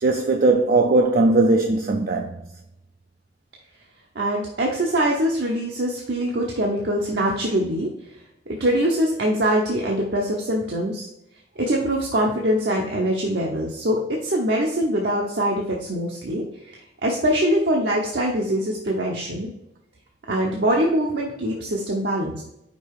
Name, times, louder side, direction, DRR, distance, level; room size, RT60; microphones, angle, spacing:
voice 1, 0.0-2.4, right 2 dB, 55° right, 0.5 m, -19 dB
voice 2, 4.1-7.9 8.5-11.1 11.6-16.4 17.0-19.5 20.3-22.4, right 1 dB, 70° right, 0.9 m, -23 dB
5.3 x 4.5 x 4.8 m
head